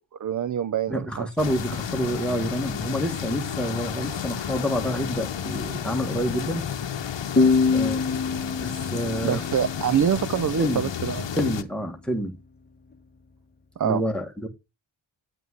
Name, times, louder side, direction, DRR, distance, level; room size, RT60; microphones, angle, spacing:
voice 1, 0.2-1.3 7.9-8.0 9.2-11.5 13.8-14.0, right 8 dB, 40° right, 0.5 m, -25 dB
voice 2, 0.9-6.7 7.7-8.1 8.6-9.4 10.6-10.9 11.4-12.4 13.8-14.5, equal, ahead, 1.7 m, -28 dB
sound 1, 1.4-11.6, left 8 dB, 65° left, 0.9 m, -32 dB
sound 2, 7.4-10.8, left 4 dB, 20° left, 1.2 m, -25 dB
9.7 x 9.2 x 3.7 m
wide cardioid pair, 130°, 47 cm